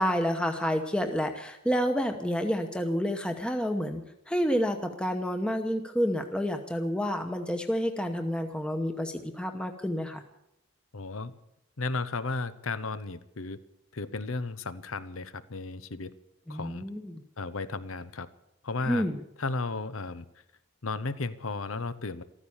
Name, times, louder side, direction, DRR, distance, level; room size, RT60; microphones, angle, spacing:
voice 1, 0.0-10.2 16.5-17.2 18.9-19.2, equal, 5° left, 5 dB, 1.0 m, -29 dB
voice 2, 10.9-11.3 11.8-13.6 13.9-16.1 16.5-16.8 17.4-18.3 18.6-19.1 19.4-20.3 20.8-22.2, left 3 dB, 80° left, 14 dB, 0.9 m, -34 dB
14.5 x 13.5 x 7.2 m, 0.82 s
head